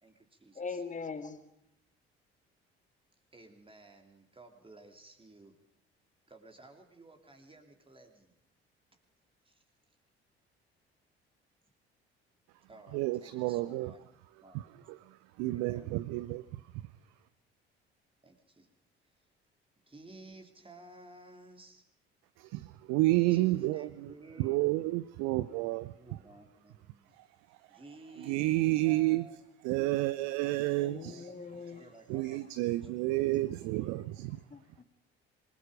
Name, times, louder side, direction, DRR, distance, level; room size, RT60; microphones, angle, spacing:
voice 1, 0.0-0.8 3.3-5.6 6.3-8.3 9.4-9.6 12.7-14.0 14.4-14.6 15.5-15.9 18.2-18.7 19.9-21.8 23.3-25.0 25.8-27.2 27.7-29.4 31.1-32.5 32.9-34.3, right 2 dB, 15° right, 3.3 m, -54 dB
voice 2, 0.6-1.4 30.8-31.9 34.5-34.8, left 5 dB, 25° left, 1.9 m, -41 dB
voice 3, 12.9-13.9 14.5-16.6 22.4-24.1 24.4-25.9 27.2-27.3 28.2-29.3 29.6-31.2 32.1-34.4, right 18 dB, 55° right, 0.7 m, -30 dB
26.5 x 21.0 x 5.2 m
figure-of-eight pair, 50°, 31 cm